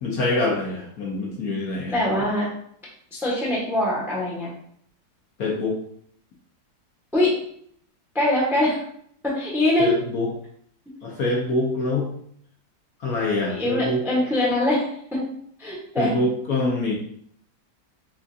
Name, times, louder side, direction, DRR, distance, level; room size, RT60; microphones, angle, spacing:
voice 1, 0.0-2.0 5.4-5.8 9.8-10.3 11.0-12.1 13.0-14.0 16.0-16.9, left 2 dB, 60° left, -3 dB, 1.2 m, -25 dB
voice 2, 1.9-2.5 3.1-4.5 7.1-7.3 8.1-8.8 9.2-9.9 13.5-15.2 15.6-16.1, left 1 dB, ahead, -5 dB, 0.9 m, -23 dB
5.8 x 2.5 x 2.7 m, 0.65 s
omnidirectional pair, 1.9 m